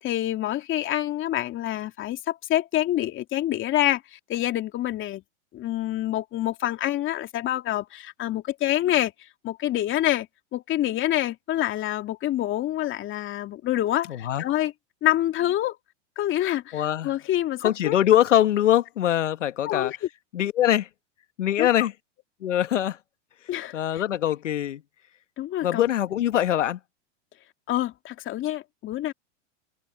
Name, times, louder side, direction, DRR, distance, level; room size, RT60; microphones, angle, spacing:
voice 1, 0.0-5.2 5.5-10.3 10.5-14.7 15.0-15.8 16.2-17.9 19.7-20.0 21.6-21.9 23.5-24.0 25.4-25.8 27.7-29.1, left 14 dB, 35° left, 2.8 m, -27 dB
voice 2, 14.1-14.4 16.7-17.1 17.6-19.9 20.3-20.9 21.4-21.9 22.4-23.0 23.7-24.8 25.6-26.8, left 12 dB, 85° left, 1.6 m, -23 dB
hypercardioid pair, 120°, 36 cm